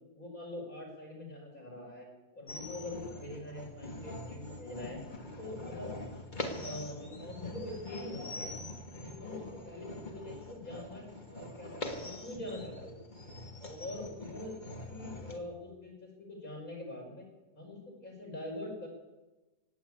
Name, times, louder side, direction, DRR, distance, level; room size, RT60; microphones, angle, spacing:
voice 1, 0.1-2.1 2.3-5.0 5.4-5.9 6.5-8.5 9.0-13.0 13.6-17.2 17.5-18.9, left 1 dB, 50° left, -1 dB, 5.2 m, -44 dB
sound 1, 2.5-15.4, left 2 dB, 25° left, 1.6 m, -43 dB
18.0 x 9.1 x 8.4 m, 1.1 s
omnidirectional pair, 1.9 m